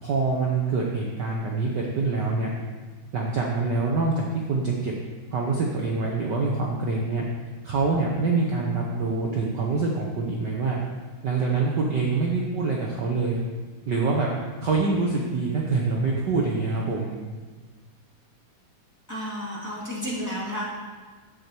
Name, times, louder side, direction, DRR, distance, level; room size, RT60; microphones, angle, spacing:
voice 1, 0.0-2.5 3.1-4.9 5.3-7.3 7.6-10.8 11.2-13.4 13.9-14.3 14.6-17.2, right 3 dB, 65° right, -1 dB, 1.0 m, -25 dB
voice 2, 19.1-20.7, equal, 5° left, -6 dB, 2.2 m, -31 dB
12.0 x 8.2 x 4.5 m, 1.4 s
omnidirectional pair, 3.4 m